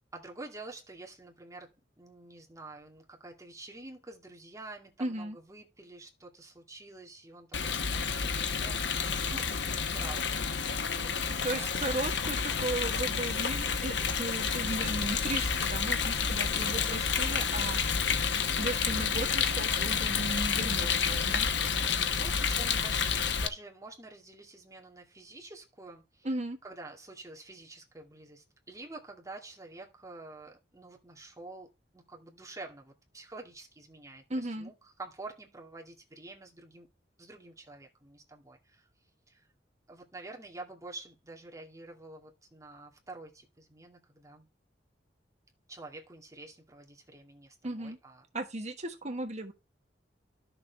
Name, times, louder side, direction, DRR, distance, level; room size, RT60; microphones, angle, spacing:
voice 1, 0.1-10.6 10.9-12.0 21.3-26.3 26.6-31.7 31.9-36.9 37.2-38.9 39.3-39.5 39.9-44.5 45.7-48.2, right 2 dB, 20° right, 2.3 m, -48 dB
voice 2, 5.0-5.4 11.4-17.8 18.6-21.5 26.2-26.6 34.3-34.7 47.6-48.0 48.3-49.5, right 2 dB, 40° right, 1.4 m, -36 dB
Rain, 7.5-23.5, left 6 dB, 75° left, 1.1 m, -30 dB
11.5 x 6.8 x 3.5 m
head